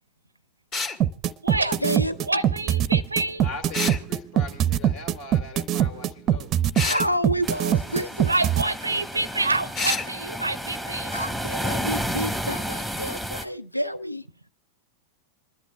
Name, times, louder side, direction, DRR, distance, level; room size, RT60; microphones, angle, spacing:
sound 1, 0.7-1.0 3.7-4.0 6.7-7.0 9.7-10.1, left 3 dB, 30° left, 1.6 m, -27 dB
sound 2, 1.0-8.6, right 10 dB, 30° right, 0.6 m, -22 dB
voice 1, 1.5-2.4 6.8-8.3 11.1-14.2, equal, 90° left, 0.5 m, -29 dB
voice 2, 2.3-3.4 8.3-11.1, right 2 dB, 80° right, 0.5 m, -27 dB
voice 3, 3.4-6.5, left 3 dB, 50° left, 2.5 m, -40 dB
sound 3, 7.4-13.4, equal, 5° left, 1.2 m, -31 dB
26.5 x 11.5 x 2.3 m
figure-of-eight pair, 90°, 0 cm